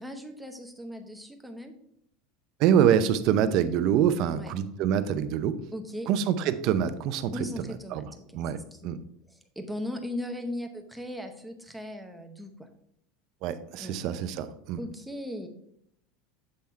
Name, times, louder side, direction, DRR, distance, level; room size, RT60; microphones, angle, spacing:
voice 1, 0.0-1.7 4.3-4.5 5.7-6.1 7.3-8.2 8.5-12.7 13.8-14.0 14.8-15.5, left 1 dB, 5° right, 5 dB, 0.8 m, -38 dB
voice 2, 2.6-5.6 6.1-7.5 7.9-8.0 8.3-9.0 13.4-14.8, right 9 dB, 50° right, 12 dB, 0.5 m, -25 dB
7.6 x 3.6 x 4.4 m, 0.71 s
supercardioid pair, 135°, 0 cm